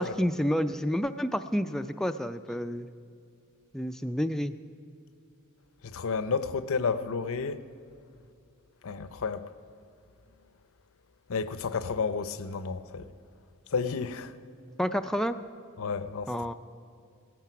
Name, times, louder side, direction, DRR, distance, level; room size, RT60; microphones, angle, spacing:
voice 1, 0.0-2.9 3.7-4.5 14.8-15.4 16.3-16.5, equal, ahead, 0.3 m, -29 dB
voice 2, 5.9-7.6 8.8-9.5 11.3-13.1 13.7-14.3 15.8-16.3, left 5 dB, 65° left, 0.6 m, -31 dB
16.0 x 14.0 x 5.9 m
head